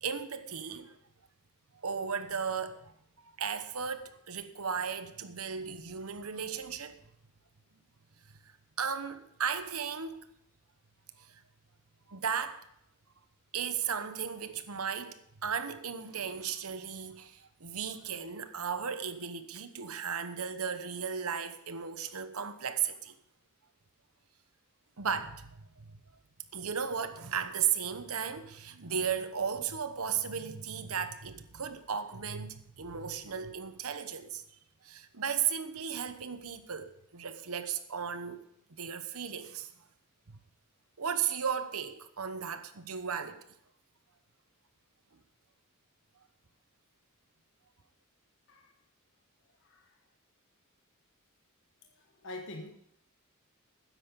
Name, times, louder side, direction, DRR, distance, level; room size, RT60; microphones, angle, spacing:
voice 1, 0.0-0.9 1.8-2.9 3.2-7.0 8.8-10.2 11.2-11.3 12.1-12.6 13.5-15.2 15.4-23.1 25.0-26.0 26.5-34.4 34.8-38.4 38.8-39.7 40.3-40.4 41.0-43.4, right 7 dB, 80° right, 1.0 m, -35 dB
voice 2, 49.6-50.0 51.8-52.8, left 2 dB, 60° left, 1.2 m, -46 dB
12.5 x 9.6 x 5.3 m
head